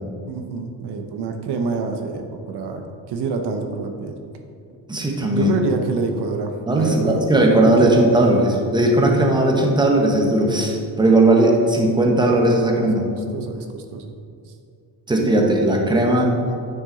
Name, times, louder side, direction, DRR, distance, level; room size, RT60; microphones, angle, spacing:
voice 1, 0.3-4.2 5.2-7.2 7.6-8.4 13.1-14.2, right 4 dB, 70° right, 5 dB, 0.9 m, -27 dB
voice 2, 4.9-5.5 6.7-13.0 15.1-16.3, right 1 dB, 10° right, 0 dB, 1.2 m, -17 dB
9.4 x 6.1 x 4.0 m, 2.4 s
cardioid pair, 125°, 42 cm